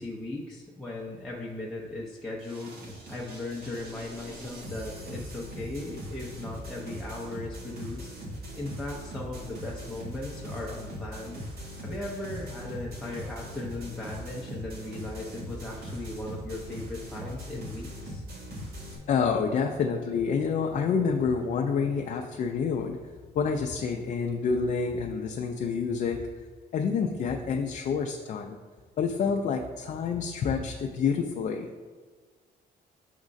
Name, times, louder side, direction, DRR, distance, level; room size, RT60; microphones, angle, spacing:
voice 1, 0.0-2.8 3.1-8.1 8.6-11.4 11.8-18.2, left 2 dB, ahead, -5 dB, 0.6 m, -37 dB
sound 1, 2.4-19.0, equal, 65° right, 1.5 m, -40 dB
voice 2, 19.1-23.0 23.4-26.3 26.7-28.6 29.0-31.7, left 5 dB, 45° left, 2 dB, 0.4 m, -28 dB
6.4 x 3.6 x 5.1 m, 1.5 s
cardioid pair, 165°, 17 cm